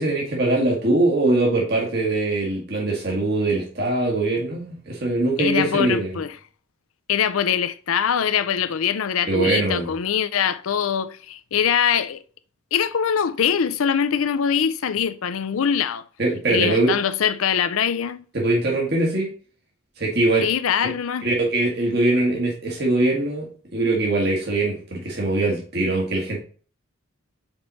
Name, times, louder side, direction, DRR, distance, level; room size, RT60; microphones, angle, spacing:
voice 1, 0.0-6.2 9.3-9.9 16.2-16.9 18.3-19.3 20.0-20.5 21.2-23.5 23.7-26.4, right 2 dB, 50° right, 1.6 m, -22 dB
voice 2, 5.4-6.4 7.1-12.2 12.7-16.0 16.5-18.2 20.4-21.3, left 8 dB, 85° left, 0.5 m, -23 dB
5.2 x 4.5 x 4.0 m
head